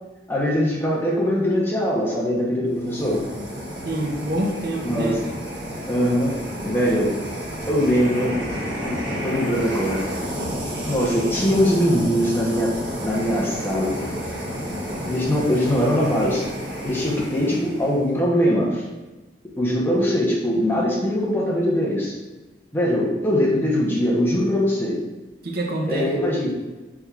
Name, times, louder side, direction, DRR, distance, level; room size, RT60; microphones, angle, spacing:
voice 1, 0.3-3.2 4.8-5.2 5.9-6.3 6.6-7.1 7.7-8.3 9.2-10.1 10.8-14.0 15.1-16.5 16.8-18.9 19.6-22.1 22.7-25.0 25.9-26.5, equal, 10° left, -4 dB, 0.8 m, -21 dB
sound 1, 2.7-18.1, equal, 75° right, 1.1 m, -31 dB
voice 2, 3.8-5.3 25.4-26.1, right 1 dB, 55° right, 1 dB, 0.6 m, -26 dB
5.8 x 3.5 x 2.3 m, 1.1 s
head